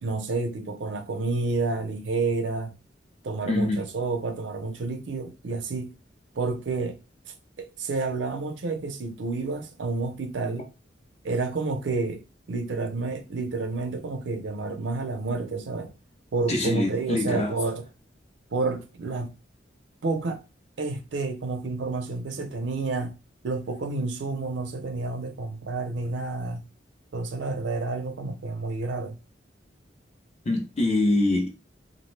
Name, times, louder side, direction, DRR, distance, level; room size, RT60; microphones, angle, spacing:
voice 1, 0.0-2.8 3.2-5.9 6.4-7.0 7.6-10.6 11.2-15.9 16.3-17.8 18.5-19.3 20.0-20.4 20.8-23.2 23.4-26.6 27.1-29.2, right 3 dB, 75° right, 0.5 m, -30 dB
voice 2, 3.5-3.8 16.5-17.6 30.4-31.5, left 2 dB, 35° left, 0.6 m, -24 dB
2.4 x 2.1 x 3.1 m
head